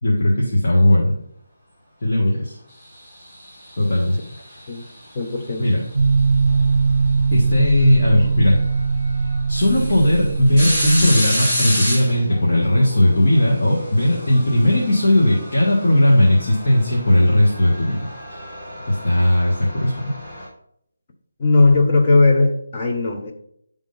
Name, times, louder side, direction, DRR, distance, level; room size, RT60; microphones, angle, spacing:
voice 1, 0.0-1.2 2.0-2.6 3.8-4.2 4.5-4.6 5.6-5.8 7.3-8.6 9.5-18.4 18.9-20.0, left 1 dB, 45° left, -5 dB, 1.6 m, -17 dB
sound 1, 3.2-4.7 6.5-6.6 8.2-8.3 8.8-8.9 9.3-20.5, equal, 15° left, 2.0 m, -29 dB
voice 2, 5.1-5.7 21.4-23.3, left 3 dB, 30° left, 2 dB, 0.8 m, -17 dB
sound 2, 5.9-11.1, right 4 dB, 70° right, 0.5 m, -20 dB
10.0 x 3.6 x 3.9 m, 0.72 s
figure-of-eight pair, 170°, 0 cm